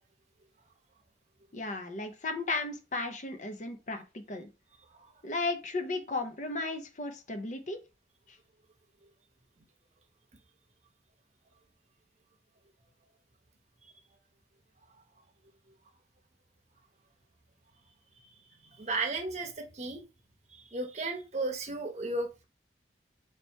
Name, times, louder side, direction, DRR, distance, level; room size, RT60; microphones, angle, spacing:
voice 1, 1.5-4.5 5.2-7.8 8.3-8.4, left 3 dB, 40° left, 0.5 m, -35 dB
voice 2, 18.7-20.0 20.5-22.4, right 2 dB, 40° right, 0.8 m, -34 dB
3.1 x 2.9 x 4.4 m
head